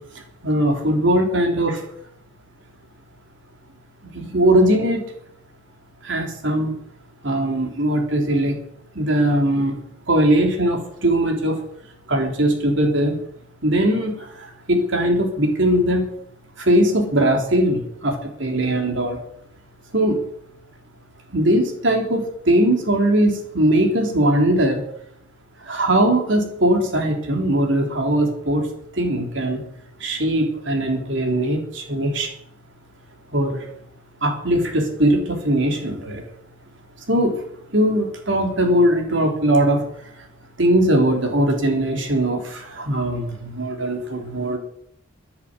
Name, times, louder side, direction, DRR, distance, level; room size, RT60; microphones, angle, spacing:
voice 1, 0.4-1.8 4.1-5.1 6.0-6.7 7.2-8.6 9.0-9.8 10.1-11.6 12.1-13.2 13.6-16.1 16.6-19.2 19.9-20.2 21.3-24.8 25.6-28.7 28.9-29.6 30.0-32.3 33.3-33.7 34.2-36.2 37.1-37.4 37.7-39.8 40.6-44.6, right 1 dB, 65° right, 2 dB, 3.5 m, -20 dB
13.0 x 10.5 x 7.4 m, 0.72 s
head